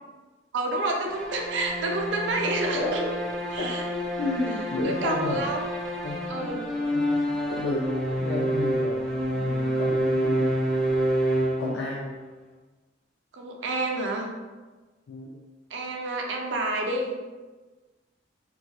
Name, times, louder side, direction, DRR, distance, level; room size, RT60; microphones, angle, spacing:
voice 1, 0.5-3.1 3.5-3.8 4.8-5.6 6.3-6.8 13.3-14.3 15.7-17.1, right 2 dB, 65° right, 1 dB, 0.4 m, -29 dB
sound 1, 1.1-12.2, equal, ahead, 0.4 m, -28 dB
voice 2, 4.2-5.5 6.0-6.6 6.9-7.9 8.2-9.0 9.3-10.8 11.6-12.1 15.1-15.3, left 2 dB, 75° left, -2 dB, 0.3 m, -32 dB
2.3 x 2.2 x 2.7 m, 1.3 s
head